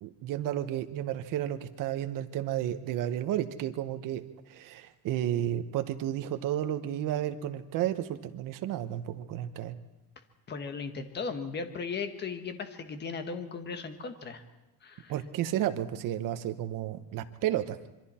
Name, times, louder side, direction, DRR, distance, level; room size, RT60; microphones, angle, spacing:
voice 1, 0.0-9.8 15.1-17.8, right 12 dB, 60° right, 9 dB, 1.2 m, -32 dB
voice 2, 10.5-14.4 14.8-15.1, left 5 dB, 30° left, 8 dB, 1.4 m, -37 dB
26.0 x 24.0 x 4.4 m, 1.0 s
cardioid pair, 170°, 36 cm